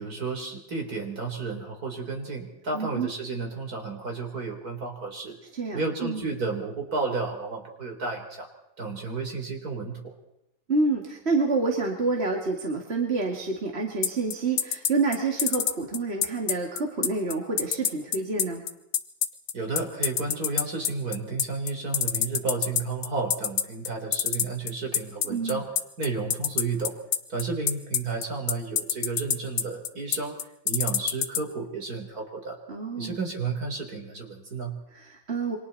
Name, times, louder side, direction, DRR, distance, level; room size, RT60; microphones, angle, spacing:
voice 1, 0.0-5.4 5.7-8.5 8.8-10.1 19.5-25.7 26.0-27.0 27.3-30.4 30.6-32.6 33.0-34.8, right 4 dB, 45° right, 3 dB, 4.3 m, -32 dB
voice 2, 2.7-3.1 5.5-6.3 10.7-18.6 25.3-25.6 32.7-33.2 34.9-35.6, right 3 dB, 30° right, 0 dB, 2.6 m, -28 dB
sound 1, 14.0-31.4, left 9 dB, 80° left, 1.9 m, -25 dB
29.0 x 24.5 x 4.2 m, 0.84 s
omnidirectional pair, 2.2 m